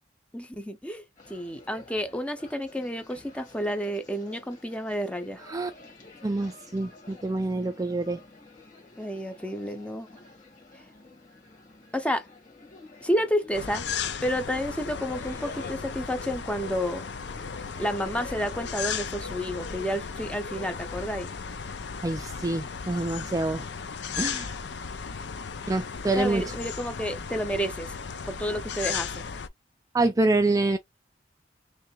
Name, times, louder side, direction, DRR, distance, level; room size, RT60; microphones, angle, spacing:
voice 1, 0.3-1.0 1.3-5.4 9.0-10.1 11.9-12.3 13.0-13.9 14.2-17.1 17.8-21.3 26.2-27.9 28.3-29.2, equal, 5° left, 0.7 m, -30 dB
sound 1, 1.2-21.1, left 3 dB, 45° left, 1.8 m, -50 dB
voice 2, 6.2-8.2 22.0-23.7 24.2-24.6 25.7-26.4 29.9-30.8, right 2 dB, 20° right, 0.4 m, -26 dB
sound 2, 13.5-29.5, left 6 dB, 65° left, 0.5 m, -35 dB
3.2 x 3.2 x 3.1 m
head